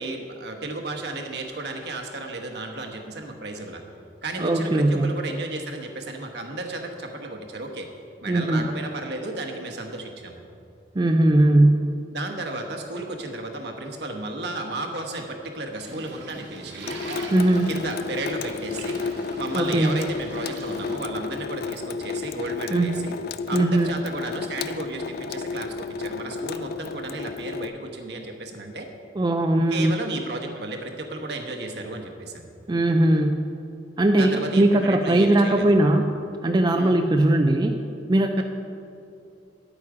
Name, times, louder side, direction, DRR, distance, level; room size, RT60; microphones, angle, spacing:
voice 1, 0.0-3.8 4.2-7.9 8.2-10.4 12.1-17.0 17.7-23.1 23.5-28.9 29.7-32.5 34.2-35.6 36.7-36.9 38.4-38.5, right 2 dB, 65° right, 3 dB, 1.2 m, -33 dB
voice 2, 4.4-5.1 8.3-8.7 10.9-11.8 17.3-17.7 19.5-20.0 22.7-22.9 23.5-23.9 29.2-29.9 32.7-33.4 34.0-36.1 36.4-37.7 38.1-38.4, right 1 dB, 25° right, 4 dB, 0.4 m, -19 dB
sound 1, 15.8-21.0, right 2 dB, 85° right, 1.7 m, -41 dB
Water tap faucet / Sink (filling or washing) / Drip, 16.9-27.7, left 5 dB, 55° left, 0.4 m, -32 dB
10.0 x 8.6 x 4.9 m, 2.7 s
head